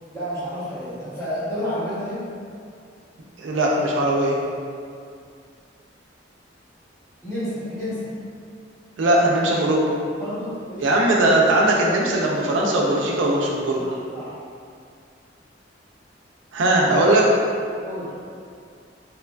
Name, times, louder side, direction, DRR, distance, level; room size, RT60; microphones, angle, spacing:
voice 1, 0.1-2.2 7.2-8.1 10.2-11.2 13.8-14.4 17.8-18.1, equal, 15° left, -12 dB, 0.8 m, -30 dB
voice 2, 3.4-4.4 9.0-9.9 10.8-13.8 16.5-17.3, right 1 dB, 90° right, -2 dB, 0.4 m, -19 dB
3.0 x 2.4 x 2.2 m, 2.3 s
head